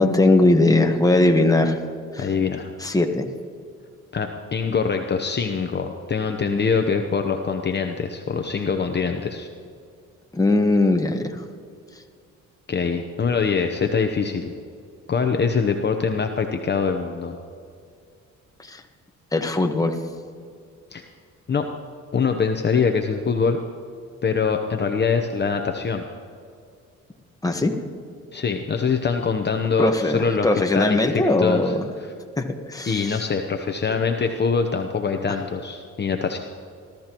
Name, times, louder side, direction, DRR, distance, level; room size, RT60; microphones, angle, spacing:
voice 1, 0.0-1.8 2.1-2.3 2.8-3.3 10.3-11.4 18.6-18.8 19.3-20.0 27.4-27.7 29.8-31.8 32.7-33.2, left 2 dB, 10° left, 3 dB, 1.3 m, -19 dB
voice 2, 2.2-2.7 4.1-9.5 12.7-14.5 15.1-17.4 20.9-21.0 21.5-21.7 22.1-23.6 24.2-26.1 28.3-31.7 32.9-36.4, left 5 dB, 35° left, 5 dB, 0.9 m, -24 dB
21.0 x 13.5 x 3.0 m, 2.3 s
cardioid pair, 90°, 30 cm